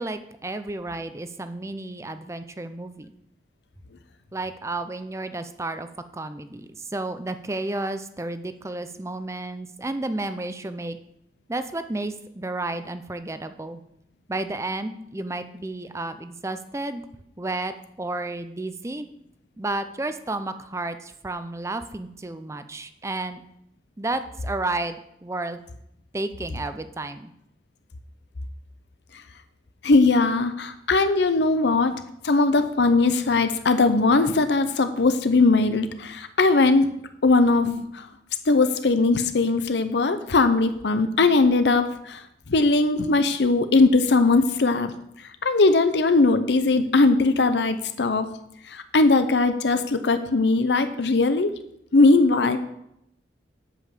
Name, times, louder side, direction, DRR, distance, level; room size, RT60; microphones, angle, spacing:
voice 1, 0.0-3.1 4.3-11.0 11.5-13.8 14.3-17.0 17.4-19.1 19.6-23.4 24.0-25.6 26.1-27.3, right 2 dB, 15° right, 10 dB, 0.5 m, -32 dB
voice 2, 29.8-36.9 37.2-38.0 38.5-42.2 42.5-44.9 45.4-48.3 48.7-51.5 51.9-52.6, left 3 dB, 80° left, 10 dB, 0.7 m, -20 dB
8.4 x 5.4 x 7.4 m, 0.77 s
head